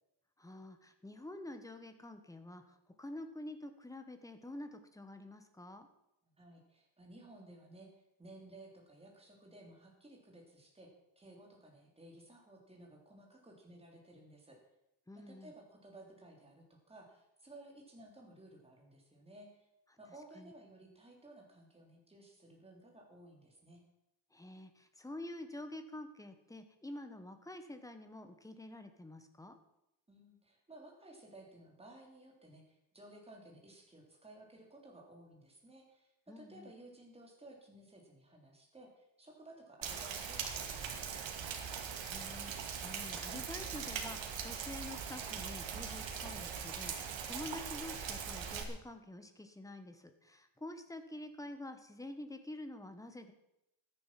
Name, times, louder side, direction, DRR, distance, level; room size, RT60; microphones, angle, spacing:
voice 1, 0.4-5.9 15.1-15.5 20.4-20.5 24.3-29.6 36.3-36.7 42.0-53.3, left 1 dB, 5° left, 7 dB, 1.2 m, -48 dB
voice 2, 6.2-7.9 8.2-14.6 15.2-19.5 20.0-23.8 30.1-41.5, right 1 dB, 15° right, 0 dB, 3.5 m, -56 dB
Rain, 39.8-48.6, right 7 dB, 80° right, 2.3 m, -41 dB
13.5 x 10.5 x 7.5 m, 0.85 s
wide cardioid pair, 175°, 45 cm